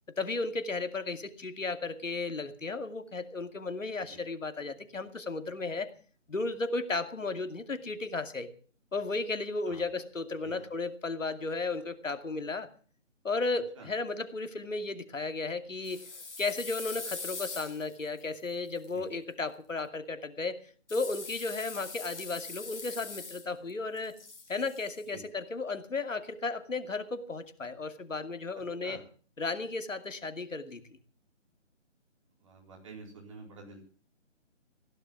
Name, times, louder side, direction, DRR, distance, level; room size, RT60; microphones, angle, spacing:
voice 1, 0.2-5.9 6.3-8.5 8.9-12.7 13.2-16.1 16.4-20.6 20.9-24.2 24.5-29.0 29.4-30.8, left 3 dB, 85° left, 9 dB, 2.6 m, -34 dB
Hot Knife in Butter, 15.8-18.9 20.9-23.7 24.0-25.0, left 4 dB, 65° left, 3.9 m, -42 dB
voice 2, 32.4-33.8, right 3 dB, 25° right, 1 dB, 4.2 m, -48 dB
16.5 x 11.5 x 7.3 m, 0.42 s
figure-of-eight pair, 170°, 37 cm